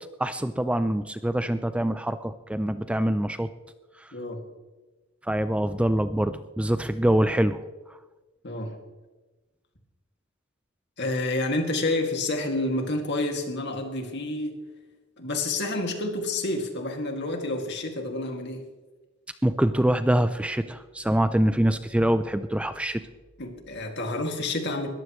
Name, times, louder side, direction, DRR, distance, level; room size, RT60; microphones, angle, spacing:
voice 1, 0.2-3.5 4.0-4.1 5.2-7.6 19.4-23.0, right 1 dB, 5° right, 11 dB, 0.4 m, -24 dB
voice 2, 4.1-4.4 8.4-8.8 11.0-14.5 15.2-18.7 23.4-24.9, left 2 dB, 60° left, 3 dB, 2.3 m, -29 dB
20.5 x 14.5 x 3.1 m, 1.2 s
head